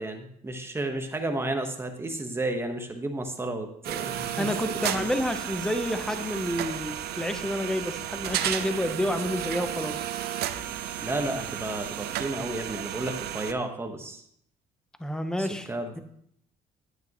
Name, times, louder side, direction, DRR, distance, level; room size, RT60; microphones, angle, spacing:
voice 1, 0.0-5.1 11.0-14.2 15.4-16.0, right 2 dB, 15° right, 4 dB, 1.2 m, -32 dB
sound 1, 3.8-13.5, right 11 dB, 70° right, 0.6 m, -33 dB
voice 2, 4.4-10.1 15.0-15.7, left 1 dB, 5° left, 8 dB, 0.8 m, -29 dB
9.5 x 9.2 x 3.0 m, 0.69 s
cardioid pair, 110°, 17 cm